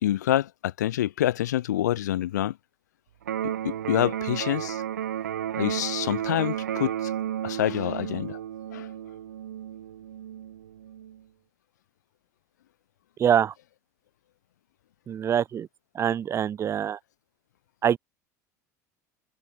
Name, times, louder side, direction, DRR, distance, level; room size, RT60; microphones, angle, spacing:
voice 1, 0.0-2.5 3.4-4.8 5.6-7.1 7.4-8.4 8.7-8.9, left 13 dB, 80° left, 0.5 m, -27 dB
Electric guitar, 3.2-11.2, right 10 dB, 85° right, 1.0 m, -33 dB
voice 2, 13.2-13.5 15.1-15.7 16.0-17.0 17.8-18.0, right 9 dB, 30° right, 0.4 m, -24 dB
hypercardioid pair, 75°, 9 cm